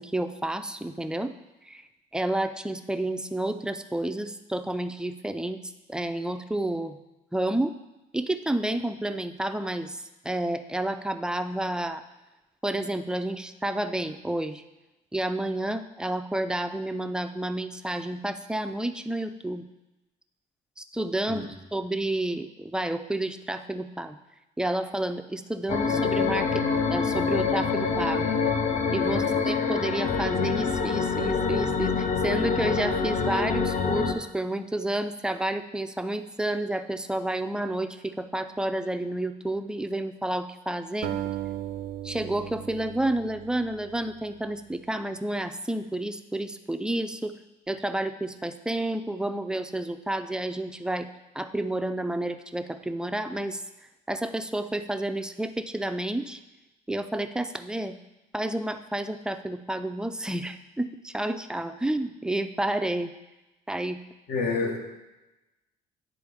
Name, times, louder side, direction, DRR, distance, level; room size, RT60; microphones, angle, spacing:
voice 1, 0.0-1.3 1.7-1.8 2.1-5.6 5.9-7.0 7.3-7.7 8.1-12.0 12.6-14.6 15.1-19.6 20.8-24.2 24.6-28.3 28.9-41.1 42.0-47.4 47.7-51.1 51.3-53.6 54.1-56.4 56.9-57.9 58.3-63.1 63.7-64.0, right 1 dB, 5° right, 9 dB, 0.3 m, -30 dB
sound 1, 25.7-34.1, left 5 dB, 45° left, 0.7 m, -26 dB
voice 2, 29.1-29.4 64.3-64.8, left 3 dB, 70° left, 2 dB, 1.2 m, -29 dB
sound 2, 41.0-44.2, right 12 dB, 75° right, 0.5 m, -36 dB
9.4 x 3.8 x 3.5 m, 1.0 s
cardioid pair, 110°, 17 cm